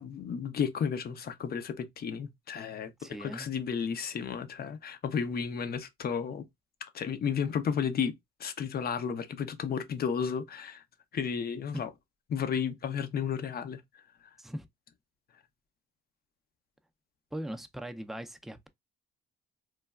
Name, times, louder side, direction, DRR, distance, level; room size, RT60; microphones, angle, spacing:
voice 1, 0.0-2.9 3.2-6.5 6.9-8.1 8.4-10.8 11.1-11.9 12.3-13.8, left 7 dB, 50° left, 0.5 m, -33 dB
voice 2, 3.0-3.5 11.7-11.9 14.4-14.7 17.3-18.7, equal, ahead, 0.4 m, -39 dB
3.2 x 2.2 x 2.2 m
cardioid pair, 90°, 20 cm